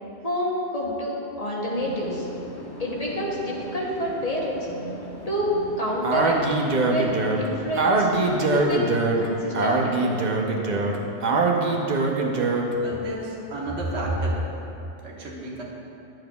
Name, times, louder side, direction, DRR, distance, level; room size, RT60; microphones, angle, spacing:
voice 1, 0.2-1.1 1.4-2.3 2.8-4.7 5.3-6.4 6.8-7.1 7.4-8.1 8.4-10.2, equal, 35° left, -4 dB, 0.9 m, -28 dB
sound 1, 1.7-8.6, right 1 dB, 70° left, 1.7 m, -39 dB
Speech, 6.0-12.8, right 3 dB, 50° right, 0.7 m, -23 dB
voice 2, 12.8-14.4 15.0-15.6, right 1 dB, 80° right, -3 dB, 1.5 m, -30 dB
10.5 x 7.5 x 2.3 m, 2.9 s
omnidirectional pair, 1.1 m